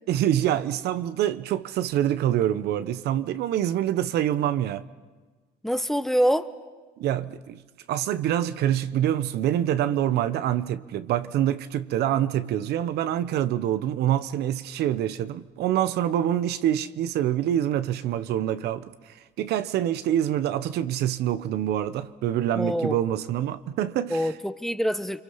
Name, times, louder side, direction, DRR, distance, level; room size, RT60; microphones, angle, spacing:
voice 1, 0.1-4.8 7.0-7.6 7.9-24.3, right 11 dB, 75° right, 1.0 m, -26 dB
voice 2, 5.6-6.5 22.5-23.0 24.1-25.2, equal, ahead, 1.0 m, -25 dB
29.5 x 23.5 x 5.7 m
cardioid pair, 110°, 17 cm